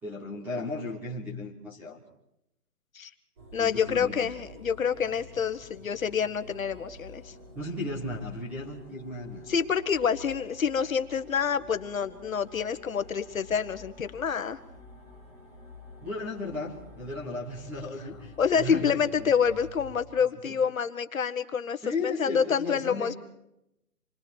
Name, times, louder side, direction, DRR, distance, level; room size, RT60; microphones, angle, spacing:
voice 1, 0.0-2.0 3.5-4.3 7.5-9.5 16.0-19.3 20.4-20.6 21.8-23.2, left 2 dB, 5° right, -3 dB, 1.3 m, -35 dB
sound 1, 3.4-20.0, left 2 dB, 25° right, 3.4 m, -49 dB
voice 2, 3.5-7.3 9.5-14.6 18.4-23.2, left 7 dB, 60° left, 10 dB, 1.5 m, -27 dB
27.5 x 22.0 x 4.6 m, 0.82 s
hypercardioid pair, 175°, 47 cm